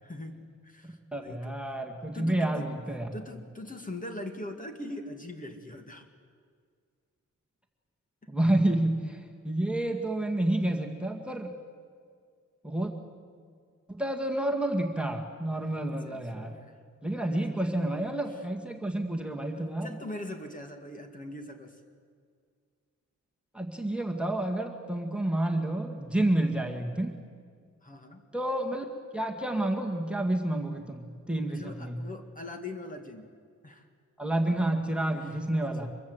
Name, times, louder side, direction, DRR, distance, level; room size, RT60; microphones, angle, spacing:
voice 1, 0.0-1.8 2.1-2.7 3.1-6.1 15.5-16.8 17.1-17.8 18.3-18.4 19.5-21.8 27.8-28.2 31.5-33.3 33.6-33.9 35.1-35.9, left 1 dB, 25° left, 5 dB, 2.0 m, -42 dB
voice 2, 0.8-3.1 8.3-11.6 12.6-12.9 13.9-16.6 17.0-19.9 23.5-27.2 28.3-28.9 29.1-32.0 34.2-35.9, right 1 dB, 5° right, 4 dB, 1.9 m, -29 dB
25.0 x 23.0 x 7.9 m, 2.1 s
wide cardioid pair, 165°, 30 cm